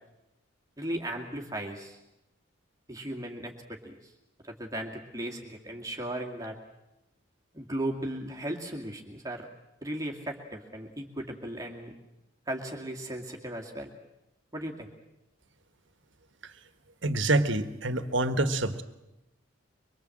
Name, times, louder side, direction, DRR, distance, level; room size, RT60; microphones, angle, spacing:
voice 1, 0.8-2.0 2.9-4.1 4.5-6.6 7.5-9.5 9.8-11.9 12.5-13.9 14.5-14.9, right 1 dB, 15° right, 1 dB, 2.2 m, -36 dB
voice 2, 17.0-18.8, right 2 dB, 65° right, 11 dB, 1.6 m, -26 dB
24.0 x 23.0 x 7.8 m, 0.94 s
head